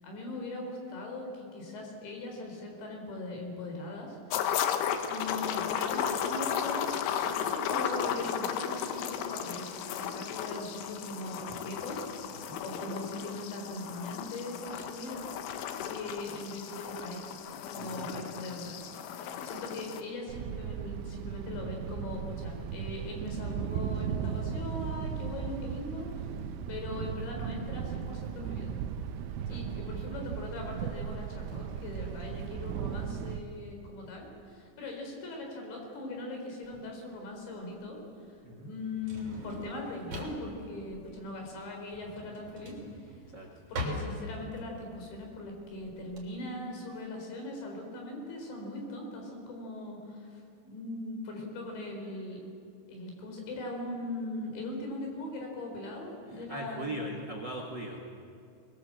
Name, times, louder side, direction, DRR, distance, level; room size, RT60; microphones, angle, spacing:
voice 1, 0.0-4.5 5.1-15.3 15.9-18.8 19.4-26.2 26.7-28.7 29.5-42.8 43.0-43.2 43.7-52.4 52.9-56.9, left 2 dB, 70° left, 2 dB, 6.7 m, -40 dB
sound 1, 4.3-20.0, left 8 dB, 90° left, 3.8 m, -35 dB
voice 2, 17.8-18.1 29.5-29.6 38.4-38.7 43.3-43.5 56.5-58.0, right 1 dB, 65° right, 2 dB, 1.1 m, -39 dB
Thunder, 20.3-33.4, right 8 dB, 85° right, 3.3 m, -36 dB
Drawer open or close, 36.6-46.2, equal, 35° right, 4.3 m, -42 dB
23.0 x 22.5 x 7.8 m, 2.4 s
omnidirectional pair, 5.4 m